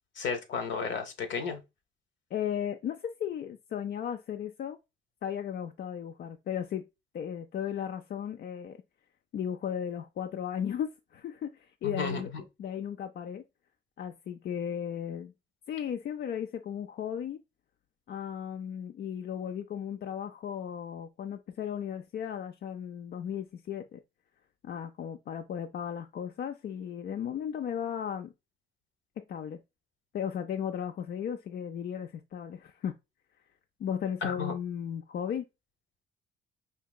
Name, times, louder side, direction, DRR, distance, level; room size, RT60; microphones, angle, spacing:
voice 1, 0.2-1.6 11.8-12.4 34.2-34.5, left 5 dB, 70° left, 0.9 m, -33 dB
voice 2, 2.3-4.8 5.2-6.8 7.1-8.8 9.3-12.3 12.6-13.4 14.0-15.3 15.7-17.4 18.1-24.0 24.6-28.3 29.2-29.6 30.1-32.9 33.8-35.5, left 9 dB, 55° left, 0.4 m, -35 dB
4.6 x 2.8 x 2.3 m
cardioid pair, 90°, 20 cm